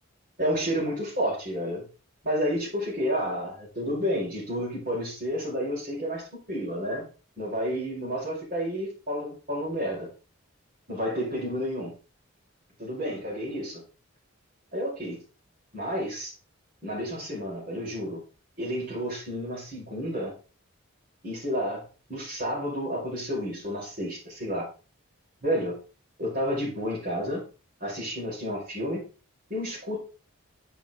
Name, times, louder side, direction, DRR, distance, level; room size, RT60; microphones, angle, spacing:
voice 1, 0.4-1.8 2.2-7.0 7.4-10.1 10.9-11.9 12.8-13.8 14.7-15.2 15.7-16.3 16.8-18.2 18.6-20.3 21.2-21.8 22.1-24.7 25.4-25.8 26.2-27.4 27.8-29.1 29.5-30.0, equal, 40° right, -4 dB, 5.2 m, -30 dB
9.1 x 5.7 x 3.7 m, 0.35 s
head